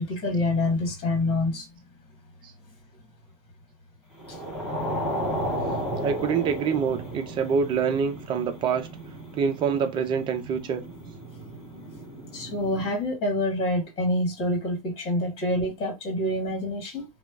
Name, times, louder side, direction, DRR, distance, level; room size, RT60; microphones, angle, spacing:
voice 1, 0.0-1.7 4.3-4.4 12.3-17.1, left 1 dB, 25° left, 1.5 m, -26 dB
sound 1, 4.2-12.9, equal, 5° right, 1.4 m, -34 dB
voice 2, 6.0-8.9 9.4-10.8, right 6 dB, 25° right, 0.5 m, -26 dB
3.0 x 2.0 x 2.4 m
hypercardioid pair, 110°, 20 cm